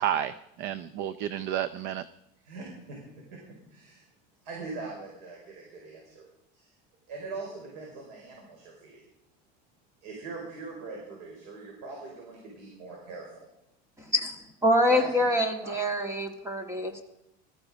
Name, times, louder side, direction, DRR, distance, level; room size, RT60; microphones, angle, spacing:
voice 1, 0.0-2.0, right 10 dB, 55° right, 15 dB, 0.6 m, -31 dB
voice 2, 2.4-3.0 3.7-4.0 4.4-6.2 6.5-6.7 7.1-9.0 10.0-13.5 14.9-15.3 15.6-15.8, right 3 dB, 85° right, 0 dB, 5.1 m, -41 dB
voice 3, 14.0-17.0, left 1 dB, 15° right, 6 dB, 1.8 m, -26 dB
20.5 x 13.5 x 5.1 m, 0.82 s
cardioid pair, 155°, 21 cm